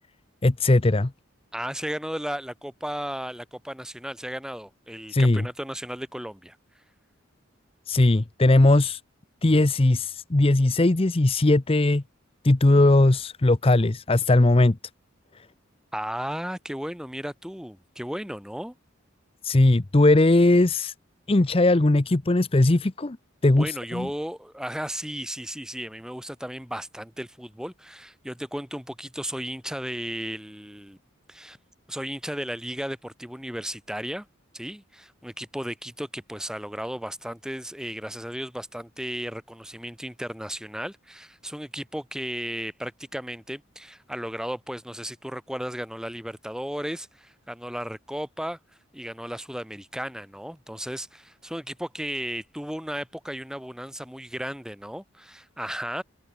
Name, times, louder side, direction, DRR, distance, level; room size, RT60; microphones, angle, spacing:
voice 1, 0.4-1.1 5.1-5.5 7.9-9.0 9.4-12.0 12.4-14.8 15.4-15.5 19.4-20.9 21.3-23.2 23.4-24.1, left 2 dB, 30° left, 0.7 m, -19 dB
voice 2, 1.5-6.6 15.9-18.7 23.5-31.0 31.3-31.6 31.9-34.3 34.5-48.6 48.9-56.0, equal, 5° right, 5.5 m, -35 dB
head